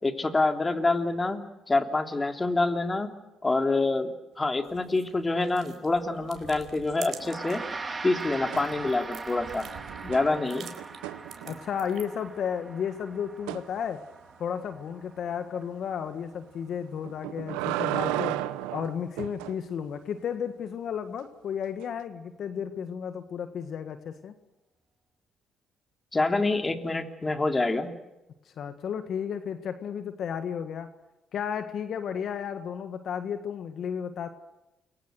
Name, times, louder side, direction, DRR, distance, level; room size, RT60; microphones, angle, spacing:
voice 1, 0.0-1.4 1.7-3.1 3.4-7.6 8.0-9.7 10.0-10.7 26.1-27.9, left 2 dB, 25° left, 5 dB, 3.2 m, -26 dB
sound 1, 4.6-7.7 8.1-12.3, right 7 dB, 60° right, 4.3 m, -47 dB
Gong, 7.2-16.7, right 3 dB, 30° right, 3.9 m, -41 dB
sound 2, 8.5-9.2 9.5-11.9 13.5-13.7 17.0-19.6 21.8-21.9, right 15 dB, 85° right, 0.9 m, -34 dB
voice 2, 11.4-14.0 14.4-18.4 18.7-24.3 28.4-30.9 31.3-34.3, left 8 dB, 65° left, 8 dB, 1.7 m, -33 dB
29.0 x 23.0 x 6.5 m, 0.99 s
hypercardioid pair, 55°, 0 cm